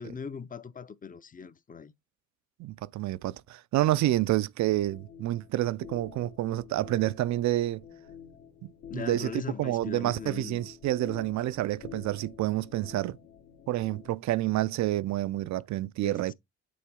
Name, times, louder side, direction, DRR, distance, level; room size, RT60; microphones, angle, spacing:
voice 1, 0.0-1.9 8.9-10.7 16.0-16.3, left 6 dB, 30° left, 0.6 m, -40 dB
voice 2, 2.6-7.8 8.6-13.2 13.7-16.3, right 15 dB, 65° right, 0.5 m, -29 dB
sound 1, 4.7-14.1, left 8 dB, 75° left, 1.5 m, -49 dB
8.5 x 3.8 x 3.6 m
cardioid pair, 90°, 30 cm